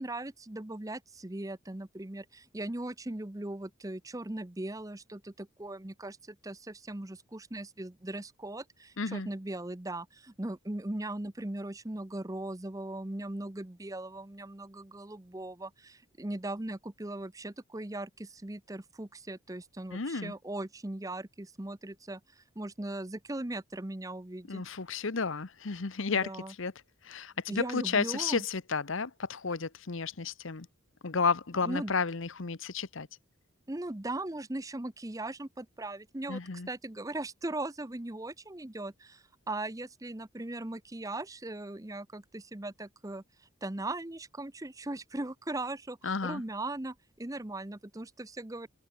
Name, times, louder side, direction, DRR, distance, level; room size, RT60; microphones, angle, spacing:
voice 1, 0.0-24.6 26.1-26.5 27.5-28.4 31.6-31.9 33.7-36.4 36.7-43.2 43.6-48.7, right 2 dB, 15° right, 0.7 m, -39 dB
voice 2, 9.0-9.3 19.9-20.3 24.5-26.3 26.6-26.7 27.0-30.7 31.0-33.1 36.3-36.7 46.0-46.4, left 5 dB, 65° left, 1.0 m, -32 dB
head